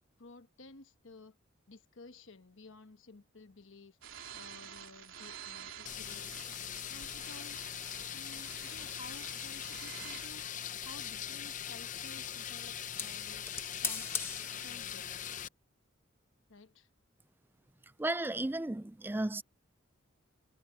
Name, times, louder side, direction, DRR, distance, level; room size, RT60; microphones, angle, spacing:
voice 1, 0.2-1.4 1.7-4.0 4.3-6.4 6.9-7.6 8.1-10.5 10.8-13.5 13.8-14.2 14.6-15.4 16.5-16.9, left 2 dB, 70° left, 1.2 m, -54 dB
sound 1, 4.0-10.3, right 9 dB, 75° right, 2.9 m, -49 dB
sound 2, 5.9-15.5, left 9 dB, 40° left, 0.6 m, -41 dB
sound 3, 6.0-15.3, left 4 dB, 10° left, 1.0 m, -46 dB
voice 2, 17.8-19.4, right 2 dB, 10° right, 0.3 m, -34 dB
head